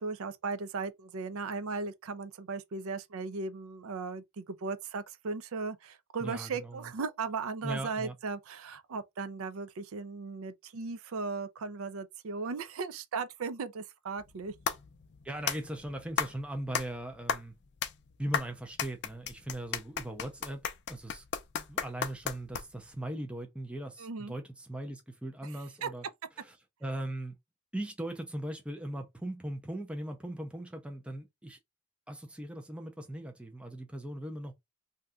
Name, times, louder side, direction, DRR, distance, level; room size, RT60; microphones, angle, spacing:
voice 1, 0.0-14.5 24.0-24.3 25.4-25.5 25.8-25.9, right 4 dB, 70° right, 0.4 m, -37 dB
voice 2, 6.2-6.9 7.6-8.1 15.2-17.5 18.2-20.6 20.9-21.2 21.5-26.1 26.4-26.5 26.8-27.3 27.7-31.6 32.1-34.5, right 1 dB, 5° right, 0.4 m, -39 dB
sound 1, 14.2-22.9, left 7 dB, 50° left, 0.4 m, -36 dB
2.7 x 2.2 x 3.5 m
head